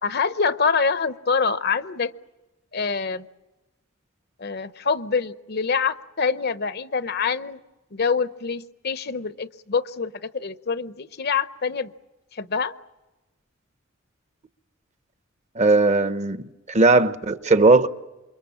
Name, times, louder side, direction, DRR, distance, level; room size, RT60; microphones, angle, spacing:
voice 1, 0.0-2.1 2.7-3.2 4.4-7.6 7.9-11.9 12.3-12.7, left 5 dB, 50° left, 0.8 m, -25 dB
voice 2, 15.6-16.4 16.7-17.9, right 3 dB, 35° right, 0.9 m, -17 dB
28.0 x 23.5 x 7.3 m
head